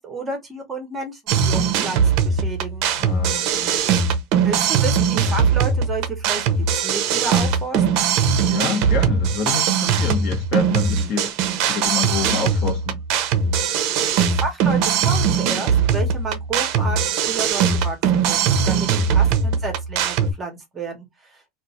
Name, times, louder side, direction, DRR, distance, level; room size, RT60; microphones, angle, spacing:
voice 1, 0.0-2.9 4.4-7.8 14.1-17.0 17.3-18.0 18.2-21.4, right 3 dB, 15° right, 0.9 m, -31 dB
sound 1, 1.3-20.3, right 6 dB, 50° right, 0.6 m, -20 dB
voice 2, 2.9-3.8 8.5-11.3 11.7-13.0, left 5 dB, 45° left, 1.0 m, -27 dB
2.4 x 2.4 x 4.0 m
cardioid pair, 165°, 0 cm